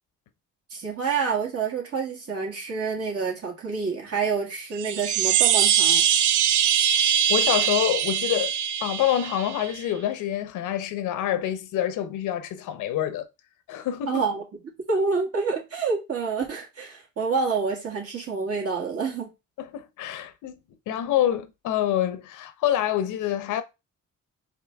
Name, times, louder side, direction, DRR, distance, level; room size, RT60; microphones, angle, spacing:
voice 1, 0.7-6.0 14.1-14.4 14.9-19.3, right 5 dB, 50° right, 2.0 m, -27 dB
sound 1, 4.7-9.8, right 9 dB, 75° right, 0.5 m, -22 dB
voice 2, 7.3-8.5 8.8-13.3 13.7-14.2 19.6-20.6 20.9-23.6, left 11 dB, 85° left, 0.7 m, -26 dB
4.9 x 2.9 x 3.4 m
cardioid pair, 90°, 30 cm